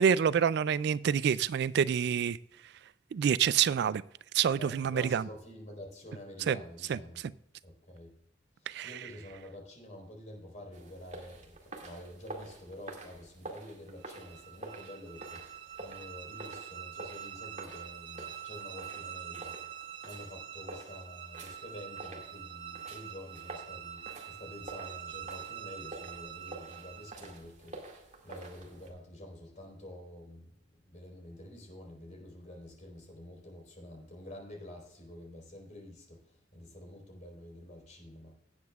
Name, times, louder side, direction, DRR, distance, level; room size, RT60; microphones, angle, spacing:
voice 1, 0.0-2.4 3.1-4.0 4.3-5.2 6.5-6.6 8.7-8.9, right 8 dB, 60° right, 0.3 m, -27 dB
voice 2, 4.6-7.2 7.6-8.1 8.6-19.6 20.0-38.3, left 1 dB, 40° left, 4.0 m, -48 dB
sound 1, 10.7-28.9, right 2 dB, 40° right, 2.2 m, -48 dB
sound 2, 14.0-27.4, right 9 dB, 85° right, 1.1 m, -45 dB
17.5 x 8.0 x 2.4 m
head